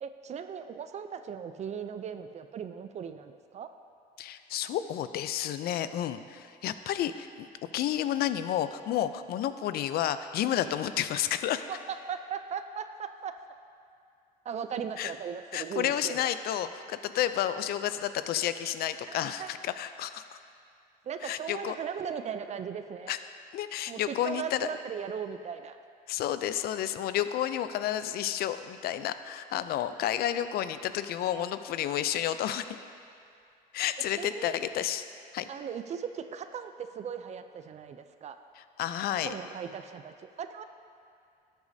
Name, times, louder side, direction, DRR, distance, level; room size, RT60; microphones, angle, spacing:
voice 1, 0.0-3.7 11.7-11.8 12.1-13.3 14.4-16.3 19.1-19.5 21.1-23.2 23.9-25.8 34.2-34.6 35.5-38.4 39.2-40.6, right 7 dB, 40° right, 9 dB, 0.4 m, -38 dB
voice 2, 4.2-7.5 7.7-11.6 15.0-15.1 15.5-20.4 21.2-21.7 23.1-23.2 23.5-24.7 26.1-32.7 33.7-35.0 35.3-35.5 38.8-39.3, left 11 dB, 65° left, 12 dB, 0.5 m, -31 dB
13.5 x 8.1 x 2.7 m, 2.5 s
cardioid pair, 110°, 17 cm